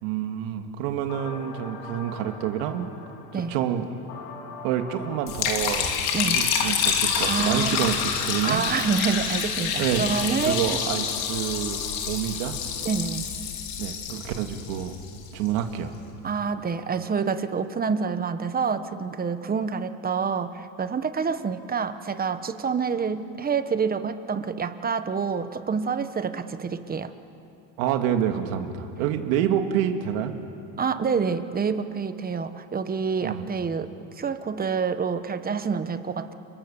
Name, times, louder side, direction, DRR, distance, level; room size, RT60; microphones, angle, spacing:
voice 1, 0.0-2.9 3.3-4.1 4.6-5.9 6.2-8.6 9.8-10.1 10.4-12.6 13.8-15.0 15.3-15.9 27.8-30.3 33.2-33.5, right 10 dB, 85° right, 5 dB, 2.3 m, -28 dB
sound 1, 1.1-13.1, left 5 dB, 65° left, 3.5 m, -43 dB
Liquid, 5.3-15.5, left 7 dB, 85° left, 3.2 m, -28 dB
voice 2, 7.3-7.8 8.4-10.6 12.8-13.2 16.2-27.1 30.8-36.3, right 5 dB, 25° right, 10 dB, 1.2 m, -27 dB
30.0 x 25.0 x 7.2 m, 3.0 s
cardioid pair, 125°, 39 cm